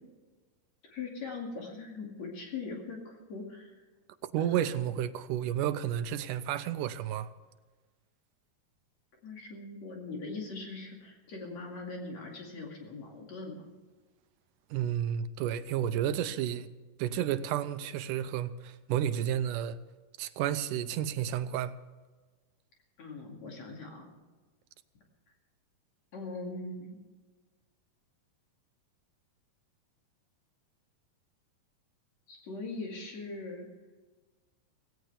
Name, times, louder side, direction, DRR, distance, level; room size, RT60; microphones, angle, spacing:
voice 1, 0.8-3.7 4.4-4.8 9.2-13.7 23.0-24.1 26.1-27.0 32.3-33.7, left 3 dB, 55° left, 0 dB, 3.5 m, -41 dB
voice 2, 4.3-7.3 14.7-16.7 17.0-19.8 20.2-21.7, right 10 dB, 80° right, 12 dB, 2.2 m, -31 dB
17.5 x 17.0 x 3.4 m, 1.3 s
omnidirectional pair, 3.9 m